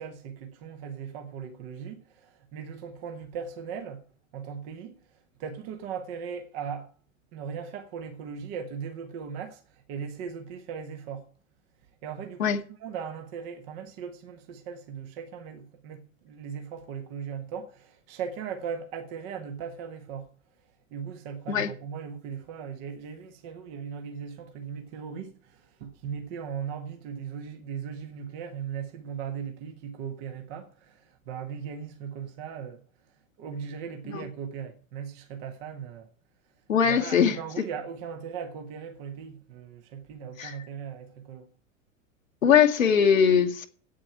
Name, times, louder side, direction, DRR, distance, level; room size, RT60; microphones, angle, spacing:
voice 1, 0.0-4.0 4.3-6.9 7.3-11.3 12.0-20.3 20.9-32.8 33.4-36.1 36.8-41.5, right 7 dB, 45° right, 1.7 m, -38 dB
voice 2, 36.7-37.4 40.4-40.6 42.4-43.7, left 7 dB, 70° left, 1.3 m, -21 dB
8.8 x 8.5 x 8.8 m
figure-of-eight pair, 90°, 41 cm